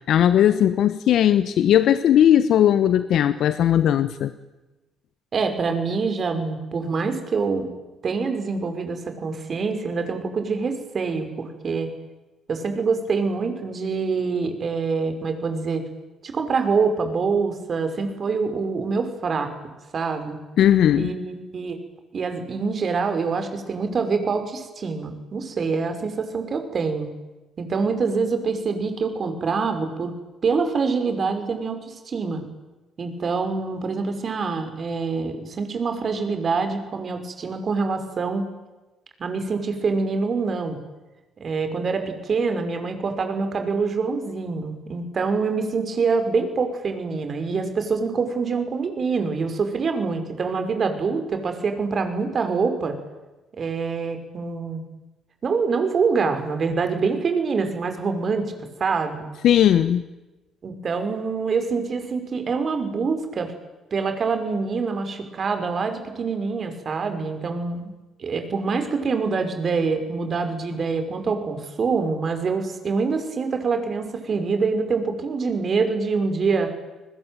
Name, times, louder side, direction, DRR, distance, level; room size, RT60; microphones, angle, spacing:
voice 1, 0.1-4.3 20.6-21.1 59.4-60.0, left 10 dB, 65° left, 13 dB, 1.1 m, -18 dB
voice 2, 5.3-7.7 8.0-11.9 12.5-15.8 16.2-19.5 19.9-20.4 20.9-21.8 22.1-27.1 27.6-30.2 30.4-32.4 33.0-38.5 39.2-40.8 41.4-52.9 53.6-54.8 55.4-58.5 58.8-59.3 60.6-63.5 63.9-67.9 68.2-76.7, right 4 dB, 50° right, 7 dB, 5.7 m, -25 dB
30.0 x 21.0 x 9.3 m, 1.1 s
hypercardioid pair, 50°, 0 cm